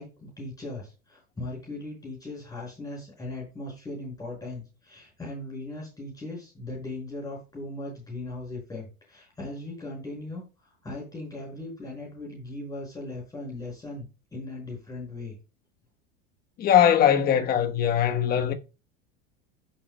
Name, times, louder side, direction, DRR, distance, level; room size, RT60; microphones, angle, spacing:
voice 1, 0.0-15.4, left 2 dB, 10° left, 5.6 m, -38 dB
voice 2, 16.6-18.5, left 9 dB, 30° left, 1.2 m, -21 dB
15.5 x 7.4 x 2.2 m
supercardioid pair, 145°, 30 cm